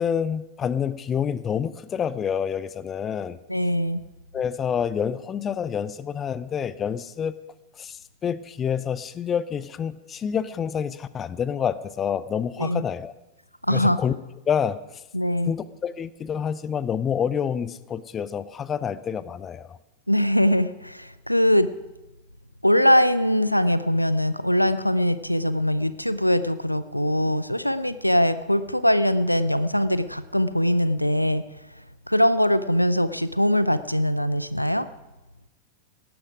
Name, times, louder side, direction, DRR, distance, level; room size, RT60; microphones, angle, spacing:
voice 1, 0.0-3.4 4.3-7.3 7.8-13.1 13.7-14.2 14.5-14.8 15.5-19.8, left 8 dB, 25° left, 17 dB, 0.6 m, -28 dB
voice 2, 3.5-4.0 12.6-12.8 13.7-14.0 15.1-15.5 20.1-21.7 22.6-31.4 32.1-34.9, equal, 90° left, 14 dB, 0.5 m, -22 dB
18.0 x 12.5 x 4.9 m, 0.98 s
figure-of-eight pair, 90°, 0 cm